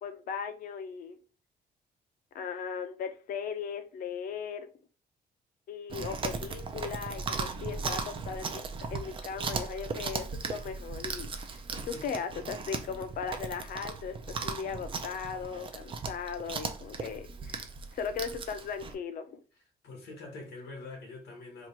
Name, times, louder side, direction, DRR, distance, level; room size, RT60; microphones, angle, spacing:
voice 1, 0.0-1.2 2.3-4.7 5.7-11.6 11.9-17.7 17.9-19.4, left 6 dB, 60° left, 0.6 m, -38 dB
Chewing mastication, 5.9-18.9, right 4 dB, 30° right, 0.5 m, -37 dB
voice 2, 11.7-12.2 17.4-17.6 19.5-21.7, left 3 dB, 80° left, 1.3 m, -46 dB
3.0 x 2.5 x 4.3 m
cardioid pair, 160°, 16 cm